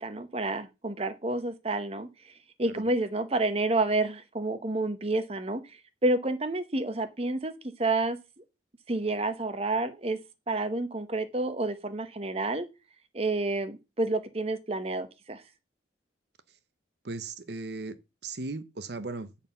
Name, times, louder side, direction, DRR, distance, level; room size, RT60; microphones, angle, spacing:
voice 1, 0.0-2.1 2.6-5.6 6.0-8.2 8.9-10.2 10.5-12.7 13.1-15.4, right 2 dB, 30° right, 0.8 m, -29 dB
voice 2, 17.0-18.0 18.2-19.3, right 3 dB, 60° right, 0.8 m, -37 dB
9.0 x 4.2 x 5.5 m
head